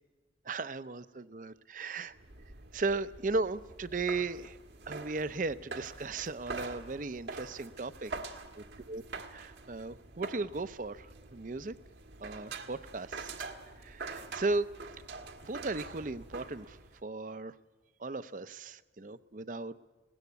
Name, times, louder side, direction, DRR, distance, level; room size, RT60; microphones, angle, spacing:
voice 1, 0.5-2.1 2.7-4.6 4.9-8.1 8.6-9.0 9.3-11.7 12.2-13.5 13.8-14.7 15.4-17.5 18.0-19.8, right 3 dB, 45° right, 14 dB, 0.6 m, -36 dB
sound 1, 2.1-17.0, right 4 dB, 80° right, 1.5 m, -45 dB
20.0 x 17.0 x 8.3 m, 1.3 s
head